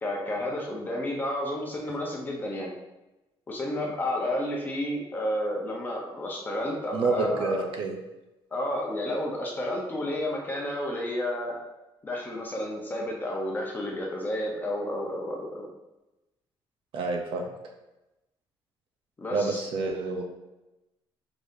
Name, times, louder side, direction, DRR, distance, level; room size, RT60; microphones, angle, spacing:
voice 1, 0.0-2.7 3.5-7.6 8.5-11.5 12.0-15.7 19.2-19.7, left 1 dB, 20° left, -1 dB, 0.8 m, -31 dB
voice 2, 6.9-7.9 16.9-17.4 19.3-20.2, right 4 dB, 70° right, 2 dB, 0.7 m, -28 dB
4.9 x 4.0 x 2.7 m, 0.99 s
cardioid pair, 175°, 9 cm